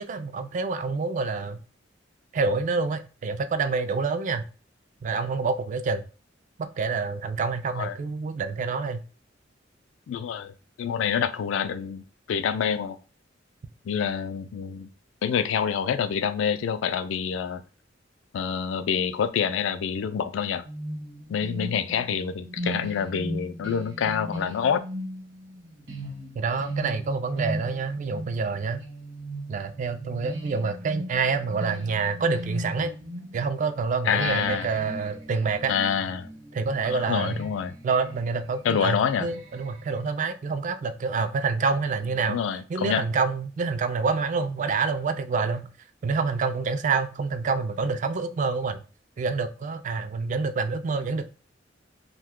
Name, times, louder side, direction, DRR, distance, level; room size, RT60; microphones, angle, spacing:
voice 1, 0.0-1.6 2.3-4.5 5.0-6.0 6.6-9.0 26.4-28.8 29.5-32.9 33.3-35.8 36.5-37.4 37.8-42.4 42.7-45.7 46.0-48.8 49.2-51.2, right 4 dB, 40° right, 0.3 m, -27 dB
voice 2, 10.1-10.5 10.8-12.0 12.3-13.0 13.8-14.9 15.2-17.6 18.3-20.7 21.3-24.8 34.0-34.7 35.7-36.3 36.8-37.7 38.6-39.3 42.2-43.0, left 7 dB, 85° left, 0.3 m, -27 dB
sound 1, 20.7-33.7 34.2-40.1, right 1 dB, 70° right, 0.9 m, -38 dB
2.7 x 2.2 x 3.6 m
head